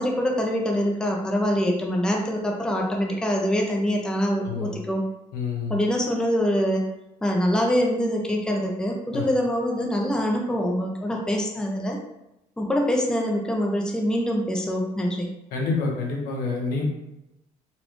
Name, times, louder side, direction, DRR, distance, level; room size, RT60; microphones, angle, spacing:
voice 1, 0.0-5.0 5.7-6.8 7.2-12.0 12.6-15.3, equal, 5° left, 0 dB, 0.5 m, -24 dB
voice 2, 5.3-5.8 9.1-9.3 15.5-16.8, left 4 dB, 80° left, -1 dB, 1.0 m, -27 dB
4.1 x 2.3 x 3.1 m, 0.89 s
cardioid pair, 115°, 15 cm